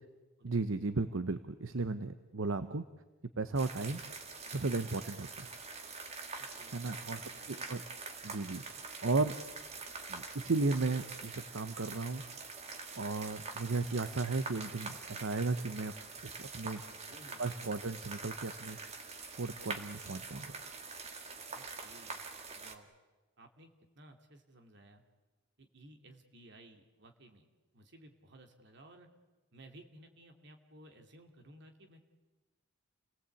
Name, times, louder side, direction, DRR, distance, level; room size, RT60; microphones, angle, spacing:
voice 1, 0.4-2.8 3.4-4.0 4.5-5.5 6.7-7.2 7.5-7.8 8.2-9.4 10.1-12.2 12.9-15.9 16.2-16.8 17.4-18.8 19.4-20.6, right 3 dB, 75° right, 11 dB, 0.8 m, -35 dB
sound 1, 3.6-22.8, right 4 dB, 30° right, 1.9 m, -45 dB
voice 2, 6.4-7.7 17.0-17.7 21.5-22.2 22.5-22.9 23.4-25.0 25.6-27.5 27.7-29.1 29.5-32.1, right 1 dB, 60° right, 4 dB, 2.7 m, -57 dB
28.5 x 18.5 x 8.4 m, 1.2 s
head